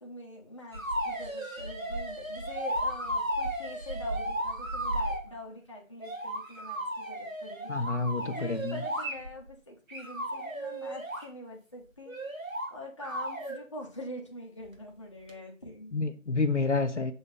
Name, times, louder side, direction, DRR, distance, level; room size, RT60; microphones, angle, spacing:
voice 1, 0.0-12.1 12.7-15.9, left 1 dB, 25° left, -1 dB, 0.9 m, -45 dB
sound 1, 0.7-5.2 6.0-9.5 9.9-11.3 12.1-12.7 13.0-13.6 15.3-15.4, right 1 dB, 90° right, 2.1 m, -34 dB
voice 2, 7.7-8.8 15.9-17.1, left 3 dB, 60° left, 8 dB, 0.7 m, -29 dB
6.8 x 4.2 x 5.6 m, 0.37 s
figure-of-eight pair, 160°, 40 cm